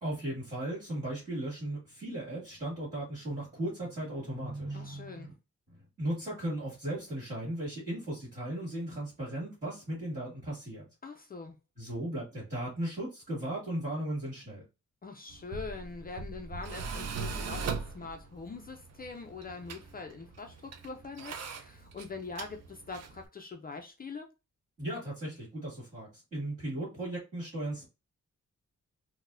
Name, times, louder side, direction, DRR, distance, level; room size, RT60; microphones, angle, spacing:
voice 1, 0.0-5.3 5.7-10.9 11.8-14.6 24.8-27.9, right 1 dB, 25° right, 1.9 m, -36 dB
voice 2, 4.7-5.3 11.0-11.6 15.0-24.3, left 4 dB, 30° left, 0.4 m, -43 dB
Tools, 15.3-23.3, right 5 dB, 60° right, 0.5 m, -40 dB
4.0 x 2.1 x 2.5 m
wide cardioid pair, 180°, 29 cm